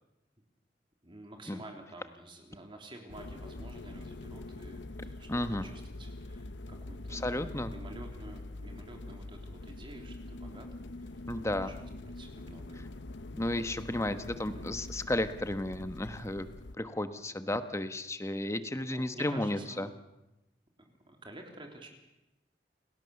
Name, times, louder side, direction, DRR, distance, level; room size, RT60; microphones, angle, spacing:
voice 1, 1.0-5.3 5.6-7.3 7.7-10.7 11.0-11.2 11.5-11.7 12.0-12.8 13.4-13.7 14.5-14.8 18.9-19.9 21.1-21.9, right 1 dB, 30° right, 3 dB, 3.4 m, -50 dB
sound 1, 3.1-16.7, left 2 dB, 75° left, 0.9 m, -44 dB
voice 2, 5.3-5.7 7.1-7.7 11.3-11.7 13.3-16.5 16.8-19.9, left 1 dB, 15° left, 10 dB, 1.3 m, -33 dB
29.0 x 18.5 x 7.1 m, 0.96 s
head